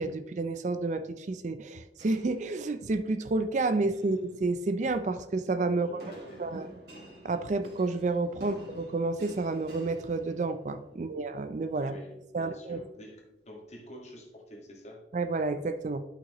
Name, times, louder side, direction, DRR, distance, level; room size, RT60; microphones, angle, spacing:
voice 1, 0.0-6.0 6.4-6.7 7.2-11.9 12.3-12.8 15.1-16.0, right 3 dB, 40° right, 11 dB, 0.4 m, -30 dB
sound 1, 2.0-3.1 3.7-4.2 6.0-10.8, right 1 dB, 60° right, 2.2 m, -50 dB
voice 2, 5.7-6.6 8.4-8.5 10.9-11.2 11.8-15.0, equal, 40° left, 0 dB, 1.7 m, -48 dB
11.0 x 5.8 x 3.0 m, 0.94 s
head